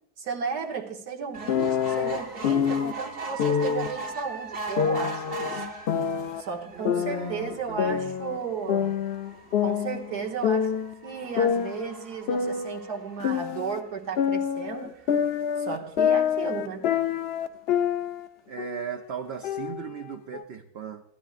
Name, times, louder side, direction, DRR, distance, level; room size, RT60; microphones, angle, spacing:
voice 1, 0.2-5.6 6.4-9.0 9.6-15.1 15.6-16.9, right 5 dB, 90° right, 1 dB, 1.8 m, -34 dB
sound 1, 1.3-13.9 14.5-14.6 14.9-15.0 15.2-15.3, right 3 dB, 40° right, 1.2 m, -40 dB
sound 2, 1.5-2.9 3.4-3.9 4.8-6.4 6.9-8.4 8.7-10.9 11.4-13.8 14.2-18.3 18.6-18.9 19.4-20.4, left 8 dB, 70° left, 0.6 m, -27 dB
voice 2, 6.7-8.2 18.5-21.0, right 8 dB, 60° right, 4 dB, 0.7 m, -37 dB
16.0 x 12.5 x 2.4 m, 0.79 s
omnidirectional pair, 1.6 m